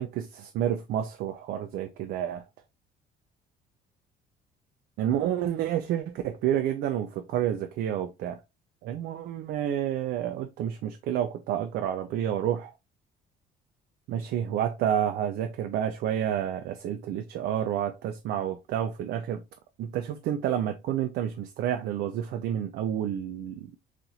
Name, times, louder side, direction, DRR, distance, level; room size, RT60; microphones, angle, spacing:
voice 1, 0.0-2.4 5.0-8.4 8.8-12.7 14.1-19.4 19.8-23.7, right 10 dB, 75° right, 0.5 m, -29 dB
4.1 x 2.5 x 2.8 m
cardioid pair, 110°, 17 cm